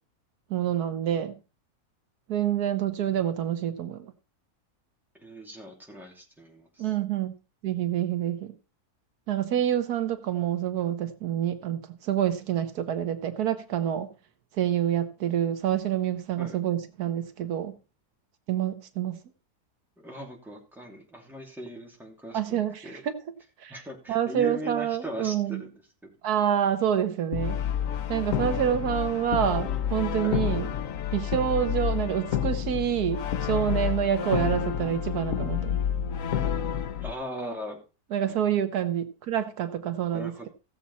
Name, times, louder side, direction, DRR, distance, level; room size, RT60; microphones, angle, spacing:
voice 1, 0.5-1.3 2.3-4.1 6.8-7.3 7.6-8.5 9.3-14.1 14.6-17.7 18.5-19.1 22.3-23.1 23.6-23.8 24.1-25.6 26.2-27.6 28.1-30.7 31.1-35.8 38.1-40.5, right 10 dB, 80° right, 1.4 m, -27 dB
voice 2, 5.2-6.9 16.4-16.6 20.0-23.0 23.7-25.7 26.0-26.1 30.2-30.4 37.0-37.8 38.3-38.4 40.1-40.5, equal, ahead, 2.8 m, -39 dB
Brass instrument, 27.3-37.1, left 9 dB, 65° left, 1.1 m, -29 dB
15.5 x 7.3 x 4.1 m
omnidirectional pair, 1.6 m